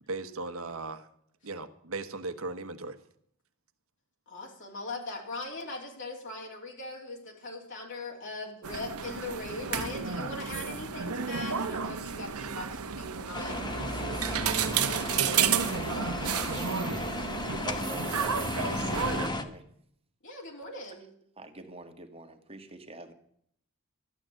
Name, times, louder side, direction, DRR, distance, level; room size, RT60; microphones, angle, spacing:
voice 1, 0.1-1.1 1.4-3.0, right 3 dB, 65° right, 11 dB, 1.2 m, -37 dB
voice 2, 4.3-13.6 20.2-21.1, left 2 dB, 60° left, -2 dB, 3.1 m, -40 dB
sound 1, 8.6-19.3, right 7 dB, 85° right, 1.0 m, -31 dB
sound 2, 13.3-19.4, left 2 dB, 20° left, 1.1 m, -35 dB
voice 3, 17.3-19.7 21.2-23.1, right 2 dB, 25° right, 6 dB, 1.7 m, -45 dB
13.5 x 9.1 x 7.7 m, 0.67 s
head